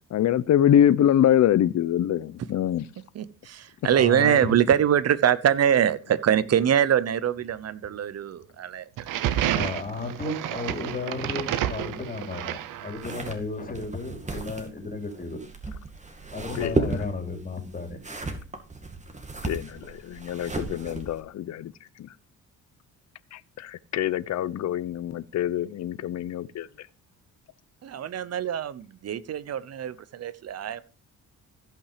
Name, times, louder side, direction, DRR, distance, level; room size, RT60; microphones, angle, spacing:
voice 1, 0.1-2.8 16.6-16.8 19.4-21.7 23.3-26.7, left 10 dB, 60° left, 0.7 m, -24 dB
voice 2, 3.1-9.3 27.8-30.8, right 9 dB, 55° right, 0.9 m, -24 dB
voice 3, 3.8-4.8 9.5-15.4 16.3-18.0, left 3 dB, 25° left, 2.9 m, -33 dB
sound 1, 9.0-13.3, right 11 dB, 85° right, 0.9 m, -30 dB
sound 2, 13.0-21.2, right 2 dB, 20° right, 2.3 m, -34 dB
15.0 x 5.8 x 5.0 m
cardioid pair, 100°, 31 cm